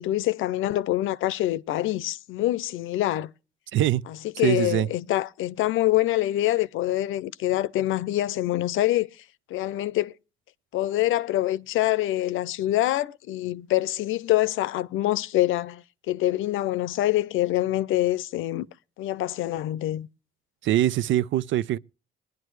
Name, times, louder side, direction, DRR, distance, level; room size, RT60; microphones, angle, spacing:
voice 1, 0.0-3.3 4.1-9.1 9.5-10.1 10.7-18.7 19.0-20.1, left 15 dB, 85° left, 0.6 m, -25 dB
voice 2, 4.4-4.9 20.6-21.8, right 13 dB, 75° right, 0.5 m, -23 dB
20.0 x 11.0 x 3.2 m
cardioid pair, 90°, 20 cm